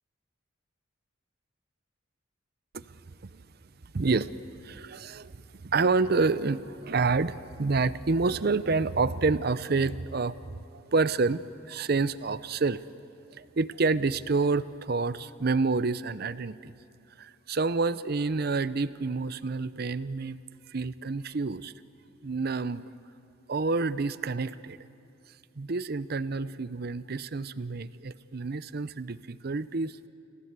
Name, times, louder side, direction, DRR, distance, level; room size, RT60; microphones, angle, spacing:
voice 1, 3.9-4.3 4.6-5.3 5.6-10.3 10.7-12.8 13.3-16.7 17.2-20.4 20.7-21.7 22.2-22.8 23.5-24.8 25.6-30.1, right 4 dB, 50° right, 15 dB, 0.6 m, -28 dB
29.5 x 15.5 x 8.2 m, 2.6 s
head